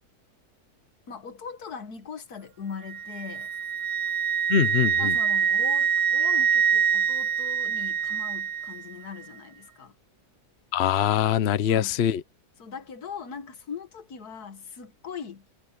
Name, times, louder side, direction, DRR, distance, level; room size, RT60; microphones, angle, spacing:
voice 1, 1.1-3.5 5.0-9.9 11.7-12.0 12.6-15.5, left 6 dB, 75° left, 2.0 m, -40 dB
Wind instrument woodwind instrument, 2.9-8.8, right 7 dB, 60° right, 0.9 m, -25 dB
voice 2, 4.5-5.1 10.7-12.2, left 9 dB, 55° left, 0.9 m, -23 dB
omnidirectional pair, 1.7 m